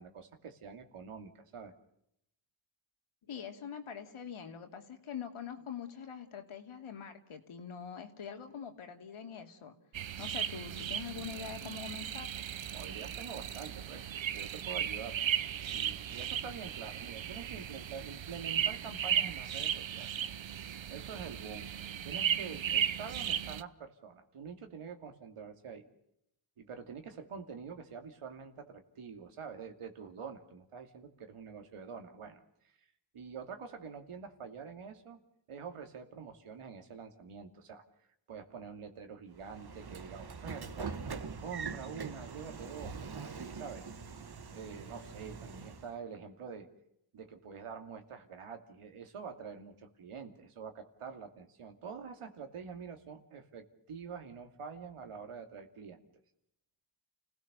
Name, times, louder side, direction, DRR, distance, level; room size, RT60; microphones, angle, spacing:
voice 1, 0.0-1.7 12.7-15.2 15.7-20.3 20.9-21.7 22.0-25.9 26.6-32.4 33.1-35.2 35.5-37.8 38.3-41.0 41.4-43.9 44.5-46.7 47.1-56.1, right 6 dB, 85° right, 5 dB, 2.7 m, -46 dB
voice 2, 3.3-9.8 10.2-12.3, left 7 dB, 80° left, 5 dB, 2.8 m, -44 dB
sound 1, 9.9-23.6, right 9 dB, 65° right, 0.9 m, -36 dB
Train / Sliding door, 39.4-45.9, right 5 dB, 50° right, 1.6 m, -43 dB
29.5 x 17.0 x 6.9 m, 0.76 s
cardioid pair, 70°, 49 cm